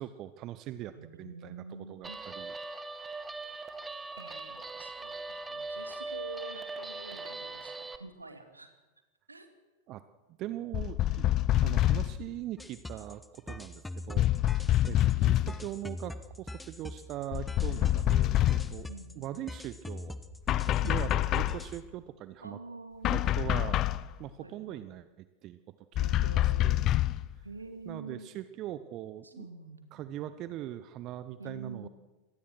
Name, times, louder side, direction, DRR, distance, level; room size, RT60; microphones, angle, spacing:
voice 1, 0.0-2.5 9.9-10.0 10.4-11.2 11.6-18.9 19.2-20.1 20.7-22.6 23.1-25.1 25.4-25.6 26.2-26.9 27.9-29.5 29.9-31.9, right 13 dB, 35° right, 13 dB, 0.9 m, -41 dB
voice 2, 0.9-2.2 4.2-8.7 9.3-9.5 11.5-11.9 14.9-15.3 18.9-19.3 20.8-21.3 22.4-23.4 24.4-24.9 26.0-26.9 27.4-28.3 29.2-30.0 31.4-31.9, right 3 dB, 80° right, 7 dB, 2.6 m, -47 dB
Guitar, 2.0-8.0, right 3 dB, 10° right, 1.6 m, -40 dB
sound 1, 10.7-12.2 14.2-15.6 17.3-18.8 20.5-21.7 23.0-24.1 26.0-27.3, left 13 dB, 35° left, 0.7 m, -26 dB
sound 2, 12.6-21.8, left 1 dB, 5° left, 1.3 m, -43 dB
25.5 x 19.0 x 6.2 m, 1.2 s
figure-of-eight pair, 90°, 0 cm